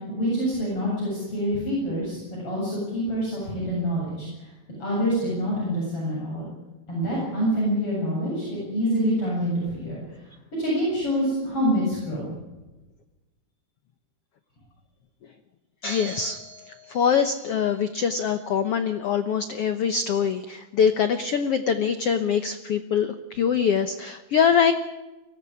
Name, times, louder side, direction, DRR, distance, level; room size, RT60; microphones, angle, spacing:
voice 1, 0.1-4.5 4.8-6.5 6.9-10.0 10.6-12.3, equal, 35° left, -5 dB, 8.7 m, -26 dB
voice 2, 15.8-24.7, left 7 dB, 80° left, 9 dB, 1.3 m, -24 dB
24.0 x 17.5 x 9.9 m, 1.1 s
omnidirectional pair, 4.2 m